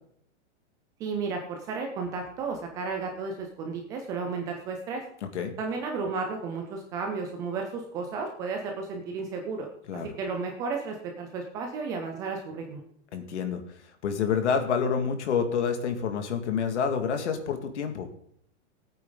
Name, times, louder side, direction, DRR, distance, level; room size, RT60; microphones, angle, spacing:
voice 1, 1.0-5.0 5.6-9.7 10.2-12.8, right 4 dB, 10° right, 3 dB, 0.4 m, -33 dB
voice 2, 5.2-5.5 9.9-10.1 13.1-18.1, left 6 dB, 70° left, 6 dB, 2.3 m, -28 dB
17.5 x 8.8 x 3.9 m, 0.66 s
supercardioid pair, 170°, 35 cm